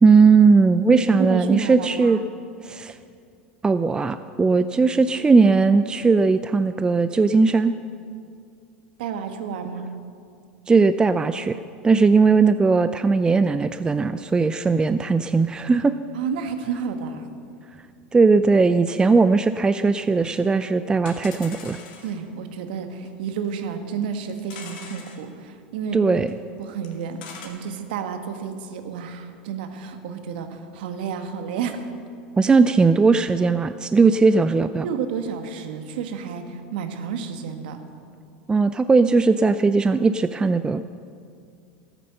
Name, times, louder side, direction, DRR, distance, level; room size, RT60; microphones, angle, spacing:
voice 1, 0.0-2.2 2.6-3.0 3.6-7.7 10.7-11.6 11.8-15.9 18.1-21.8 25.9-26.4 32.4-34.9 38.5-40.8, right 4 dB, 15° right, 12 dB, 0.4 m, -18 dB
voice 2, 0.8-2.2 9.0-9.9 16.1-17.3 22.0-26.0 26.6-31.9 34.8-37.8, right 6 dB, 70° right, 7 dB, 1.3 m, -30 dB
sound 1, 19.0-19.1 19.3-19.4 19.6-19.7 20.2-20.3 20.5-20.6 21.1-22.2 23.0-23.1 23.4-23.5 24.0-25.2 26.3-26.4 26.6-27.5, left 5 dB, 70° left, 2.4 m, -41 dB
13.5 x 9.1 x 6.6 m, 2.3 s
hypercardioid pair, 90°, 5 cm